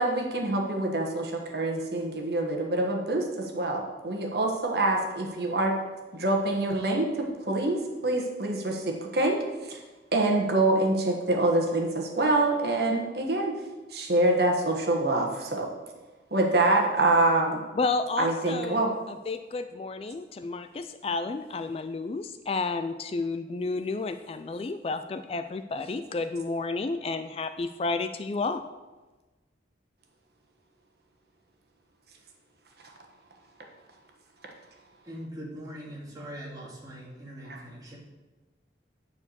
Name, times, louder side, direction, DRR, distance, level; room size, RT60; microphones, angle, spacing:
voice 1, 0.0-5.8 6.1-9.8 10.1-13.6 13.9-15.7 16.3-17.6 18.2-18.9 37.5-37.6, right 2 dB, 60° right, 1 dB, 1.4 m, -26 dB
voice 2, 17.8-18.9 19.3-28.6, left 3 dB, 30° left, 10 dB, 0.3 m, -31 dB
voice 3, 35.0-38.0, equal, 20° right, -4 dB, 2.2 m, -41 dB
9.5 x 4.7 x 6.8 m, 1.2 s
head